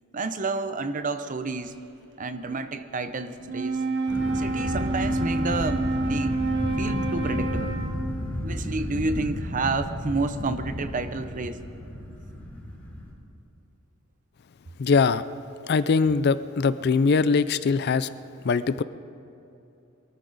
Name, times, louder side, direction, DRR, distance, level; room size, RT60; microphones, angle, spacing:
voice 1, 0.1-1.7 2.2-3.8 4.3-6.4 6.8-7.7 8.4-11.6, right 3 dB, 35° right, 10 dB, 0.6 m, -30 dB
Wind instrument woodwind instrument, 3.4-8.2, right 2 dB, 55° right, 1.5 m, -28 dB
sound 1, 4.1-13.1, left 1 dB, 10° left, 3.4 m, -32 dB
voice 2, 14.8-15.2 15.7-18.1 18.4-18.8, left 5 dB, 50° left, 15 dB, 0.4 m, -22 dB
23.0 x 13.5 x 4.0 m, 2.8 s
head